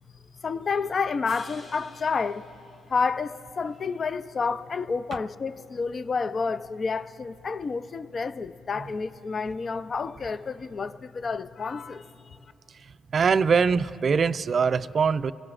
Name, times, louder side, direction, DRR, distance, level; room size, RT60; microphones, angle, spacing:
voice 1, 0.4-2.5 2.9-12.1, left 4 dB, 40° left, 0.4 m, -29 dB
sound 1, 1.2-3.6, left 2 dB, 60° left, 3.0 m, -52 dB
voice 2, 12.8-15.3, right 5 dB, 45° right, 0.3 m, -23 dB
25.0 x 16.5 x 2.5 m
cardioid pair, 90°, 0 cm